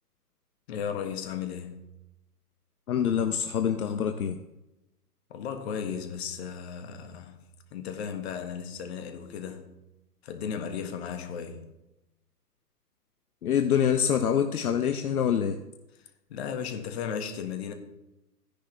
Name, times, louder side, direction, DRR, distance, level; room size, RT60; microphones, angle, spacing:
voice 1, 0.7-1.9 5.3-7.4 7.7-9.7 10.2-11.7 16.3-17.7, left 7 dB, 40° left, 1.6 m, -35 dB
voice 2, 2.9-4.4 13.4-15.6, left 8 dB, 65° left, 0.9 m, -25 dB
15.0 x 10.5 x 3.3 m
hypercardioid pair, 135°, 48 cm